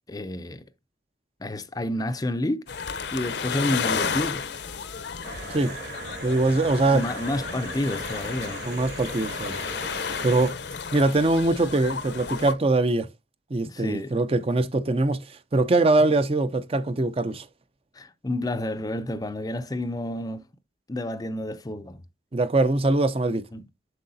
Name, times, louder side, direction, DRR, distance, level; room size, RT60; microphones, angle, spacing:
voice 1, 0.1-0.6 1.4-2.7 3.1-4.5 6.9-8.6 13.7-14.2 17.9-20.4 20.9-22.0 23.5-23.7, left 1 dB, 20° left, 0.4 m, -30 dB
sound 1, 2.7-12.5, left 6 dB, 65° left, 0.7 m, -32 dB
sound 2, 5.2-10.5, right 2 dB, 55° right, 2.2 m, -39 dB
voice 2, 6.2-7.0 8.6-9.6 10.2-10.6 10.9-13.1 13.5-17.5 22.3-23.5, right 2 dB, 30° right, 0.5 m, -22 dB
7.7 x 6.4 x 2.6 m
head